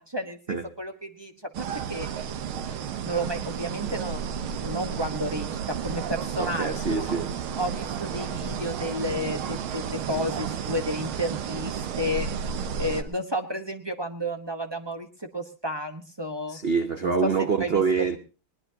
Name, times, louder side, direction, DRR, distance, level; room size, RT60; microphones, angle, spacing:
voice 1, 0.0-2.1 3.0-4.2 4.6-7.0 7.6-16.6 17.0-18.1, equal, 20° right, 0.8 m, -32 dB
sound 1, 1.5-13.0, right 7 dB, 85° right, 1.9 m, -32 dB
voice 2, 6.4-7.3 16.5-18.2, right 5 dB, 55° right, 0.6 m, -25 dB
21.0 x 19.5 x 2.9 m
omnidirectional pair, 2.2 m